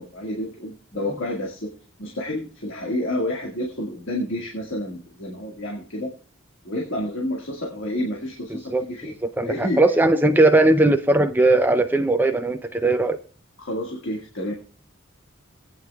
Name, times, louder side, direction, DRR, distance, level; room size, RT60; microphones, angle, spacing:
voice 1, 0.0-1.7 2.0-6.1 6.6-9.1 9.4-9.8 13.6-14.5, left 1 dB, 70° left, 1.8 m, -29 dB
voice 2, 8.7-13.2, right 2 dB, 10° right, 0.5 m, -19 dB
19.5 x 9.2 x 2.3 m
head